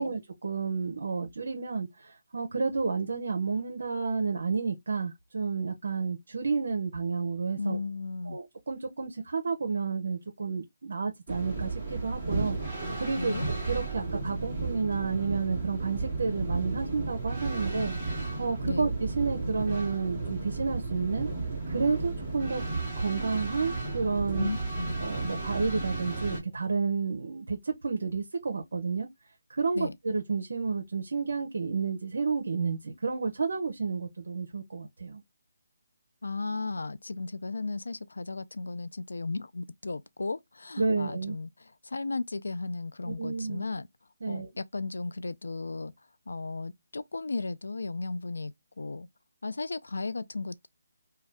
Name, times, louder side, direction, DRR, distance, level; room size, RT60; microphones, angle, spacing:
voice 1, 0.0-7.8 8.3-21.3 21.7-22.6 23.0-24.5 25.0-29.1 29.5-35.2 40.8-41.4 43.1-43.6 44.2-44.5, right 4 dB, 65° right, 0.7 m, -31 dB
voice 2, 7.6-8.4 13.2-13.4 18.6-18.9 24.3-24.9 29.7-30.0 36.2-41.5 41.8-43.9 44.3-45.9 46.3-49.1 49.4-50.7, left 3 dB, 85° left, 0.4 m, -35 dB
sound 1, 11.3-26.4, right 3 dB, 10° right, 1.2 m, -33 dB
2.6 x 2.2 x 3.3 m
hypercardioid pair, 170°, 0 cm